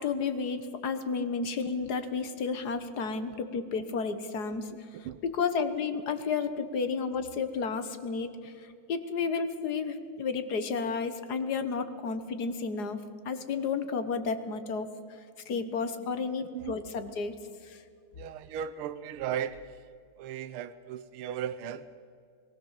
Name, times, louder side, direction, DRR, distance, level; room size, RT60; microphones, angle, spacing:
voice 1, 0.0-13.0 13.2-17.8, left 5 dB, 50° left, 10 dB, 1.6 m, -32 dB
voice 2, 18.2-19.7 20.2-21.9, right 9 dB, 75° right, 9 dB, 1.6 m, -36 dB
22.5 x 15.5 x 7.4 m, 2.3 s
omnidirectional pair, 2.4 m